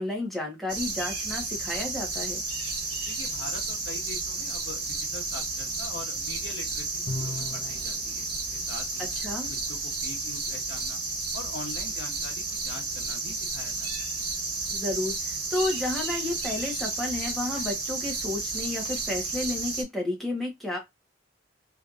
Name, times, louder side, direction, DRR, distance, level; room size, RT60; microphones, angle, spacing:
voice 1, 0.0-2.4 9.0-9.5 14.7-20.8, left 2 dB, ahead, 1.3 m, -32 dB
sound 1, 0.7-19.8, right 3 dB, 55° right, 1.4 m, -32 dB
voice 2, 3.1-8.3 8.5-9.1 9.4-11.0 11.3-14.2, left 3 dB, 85° left, 1.1 m, -43 dB
Bowed string instrument, 7.1-8.0, left 2 dB, 60° left, 0.7 m, -34 dB
3.2 x 3.2 x 2.5 m
head